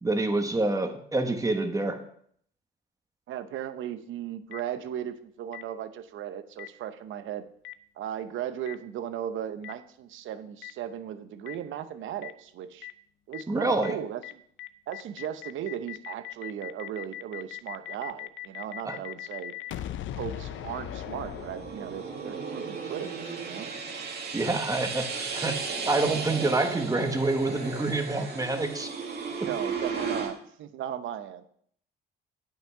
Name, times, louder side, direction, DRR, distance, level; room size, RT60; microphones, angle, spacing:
voice 1, 0.0-2.0 13.5-14.0 18.8-19.0 24.3-25.6 25.9-28.9 29.4-29.5, right 2 dB, 15° right, 6 dB, 1.3 m, -27 dB
voice 2, 3.3-7.5 8.0-12.9 13.3-14.4 14.9-19.5 20.1-23.7 29.4-31.4, right 10 dB, 80° right, 11 dB, 0.8 m, -37 dB
Boom, 4.5-4.6 5.5-5.6 6.6-6.7 7.6-7.7 8.7-8.8 9.6-9.7 10.6-10.7 11.5-11.6 12.2-12.3 12.8-12.9 13.3-13.4 13.8-13.9 14.2-14.3 14.6-22.1, left 12 dB, 75° left, 0.5 m, -39 dB
sound 1, 20.2-30.3, right 5 dB, 55° right, 1.9 m, -35 dB
8.9 x 5.7 x 5.7 m, 0.65 s
cardioid pair, 90°, 20 cm